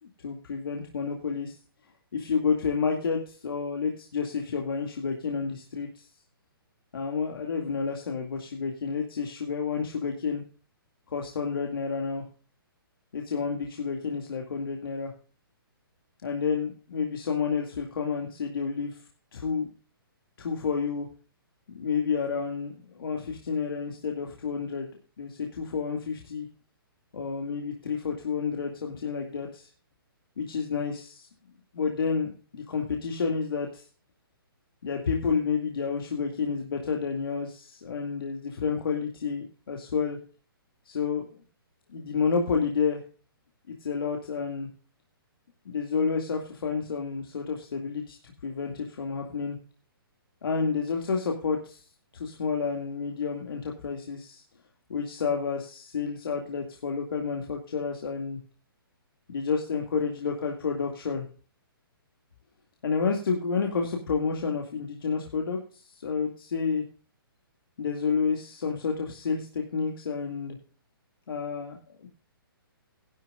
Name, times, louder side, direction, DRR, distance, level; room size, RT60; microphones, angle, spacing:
voice 1, 0.0-1.6 2.1-6.1 6.9-10.4 11.1-12.3 13.1-15.1 16.2-19.0 19.3-19.7 20.4-21.1 21.7-24.9 25.2-26.5 27.1-29.7 30.4-31.3 31.7-33.8 34.8-40.2 40.9-41.3 41.9-43.0 43.8-44.7 45.7-49.6 50.4-51.8 52.1-54.4 54.9-58.4 59.3-61.3 62.8-66.8 67.8-70.6 71.3-72.1, left 5 dB, 70° left, 2 dB, 2.2 m, -30 dB
15.5 x 11.5 x 2.5 m, 0.37 s
hypercardioid pair, 140°, 12 cm